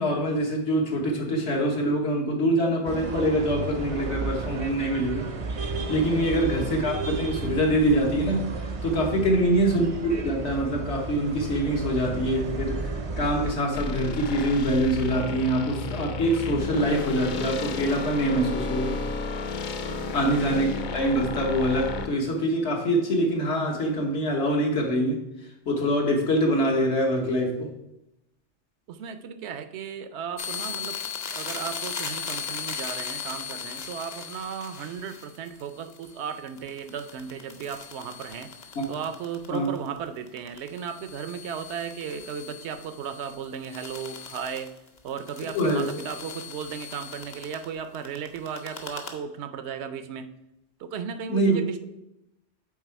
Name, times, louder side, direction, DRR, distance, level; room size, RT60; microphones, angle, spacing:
voice 1, 0.0-5.3 5.6-19.0 20.1-20.7 20.9-25.2 25.6-27.7 38.7-38.8 39.5-39.7 45.5-45.8 51.3-51.6, equal, 70° left, 1 dB, 1.5 m, -24 dB
sound 1, 2.8-13.5, right 3 dB, 40° right, 0.5 m, -33 dB
voice 2, 9.1-9.5 19.9-20.2 28.9-31.0 31.3-38.5 38.9-44.7 45.0-50.3 50.8-51.8, right 7 dB, 75° right, 10 dB, 0.8 m, -35 dB
sound 2, 13.7-22.1, left 3 dB, 55° left, 0.6 m, -32 dB
sound 3, 30.4-40.0 40.3-47.7 47.9-49.1, left 6 dB, 40° left, 0.9 m, -38 dB
8.2 x 3.6 x 4.6 m, 0.86 s
omnidirectional pair, 1.2 m